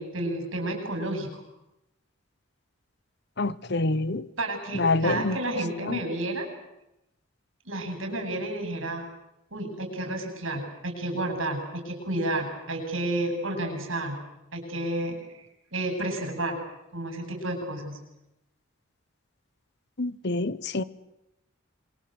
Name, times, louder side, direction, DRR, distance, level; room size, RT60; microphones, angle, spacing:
voice 1, 0.0-1.4 4.4-6.5 7.7-9.0 9.5-14.2 14.5-15.4 15.7-16.6 16.9-18.0, right 1 dB, 70° right, 4 dB, 7.8 m, -31 dB
voice 2, 3.4-4.3 4.7-5.4 5.9-6.0 20.0-20.8, left 2 dB, 55° left, 17 dB, 1.1 m, -26 dB
27.0 x 23.5 x 8.0 m, 0.89 s
head